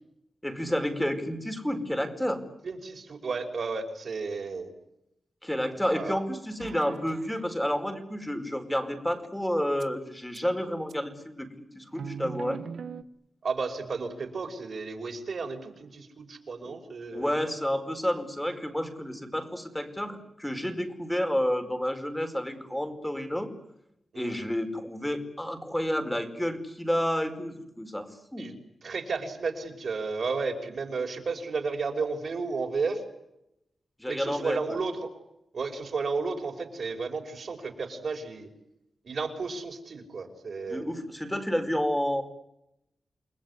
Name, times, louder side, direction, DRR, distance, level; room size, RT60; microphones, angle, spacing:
voice 1, 0.4-2.4 5.4-11.5 11.7-12.6 16.6-16.7 17.1-23.5 24.1-28.5 34.0-34.6 40.7-42.2, equal, 5° left, 7 dB, 5.0 m, -30 dB
voice 2, 2.6-4.7 5.9-6.2 13.4-17.3 24.1-24.4 28.4-28.6 28.8-33.0 34.0-35.1 35.5-38.5 39.0-40.9, right 4 dB, 65° right, 4 dB, 5.7 m, -33 dB
sound 1, 6.6-7.5 9.8-9.9 10.3-10.4 10.9-11.0 11.9-13.0, right 6 dB, 85° right, 1.5 m, -40 dB
29.5 x 20.5 x 9.8 m, 0.83 s
wide cardioid pair, 95°, 0 cm